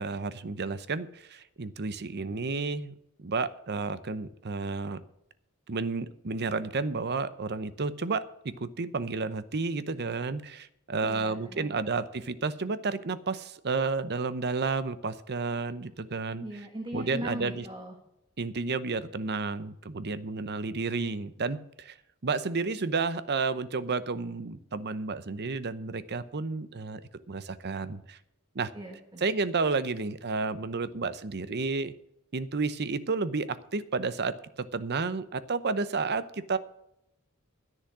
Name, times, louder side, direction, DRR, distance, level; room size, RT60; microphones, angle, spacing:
voice 1, 0.0-2.9 3.2-5.0 5.7-16.4 16.9-17.6 18.4-21.9 22.2-27.0 27.3-28.2 28.5-28.7 29.2-31.9 32.3-36.6, right 4 dB, 50° right, 14 dB, 0.8 m, -31 dB
voice 2, 11.0-11.9 16.4-18.0 28.7-29.3, right 1 dB, 25° right, 2 dB, 1.6 m, -39 dB
10.5 x 10.5 x 6.1 m, 0.80 s
head